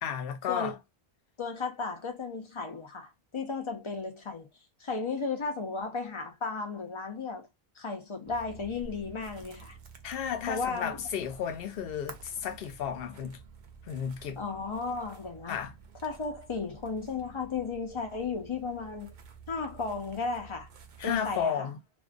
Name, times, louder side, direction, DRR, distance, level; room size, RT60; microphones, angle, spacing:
voice 1, 0.0-0.7 10.0-13.4 13.9-14.4 15.5-15.7 21.0-21.8, left 8 dB, 70° left, 0.8 m, -33 dB
voice 2, 1.4-4.5 4.8-7.5 7.8-9.8 10.5-11.0 14.4-15.6 16.0-19.1 19.5-20.7 21.0-21.7, left 4 dB, 40° left, 0.5 m, -34 dB
sound 1, 8.3-21.5, right 5 dB, 60° right, 0.6 m, -51 dB
2.4 x 2.1 x 2.4 m
omnidirectional pair, 1.0 m